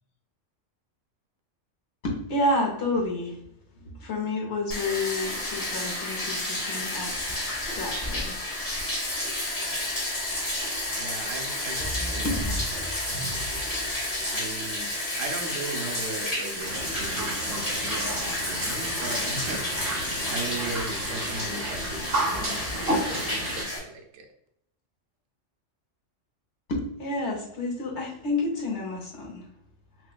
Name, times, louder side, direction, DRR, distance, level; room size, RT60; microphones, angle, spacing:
voice 1, 2.0-3.4 3.8-7.1 7.7-8.4 12.2-12.4 26.7-29.4, left 2 dB, 65° left, -2 dB, 1.2 m, -29 dB
Bathtub (filling or washing), 4.7-23.8, left 1 dB, 30° left, 1.2 m, -31 dB
voice 2, 10.9-13.7 14.3-14.9 15.2-19.6 20.3-23.4 23.7-24.2, right 3 dB, 85° right, 3 dB, 1.0 m, -38 dB
sound 1, 16.6-23.6, right 1 dB, 50° right, 1.0 m, -32 dB
5.9 x 2.2 x 2.2 m, 0.76 s
omnidirectional pair, 1.3 m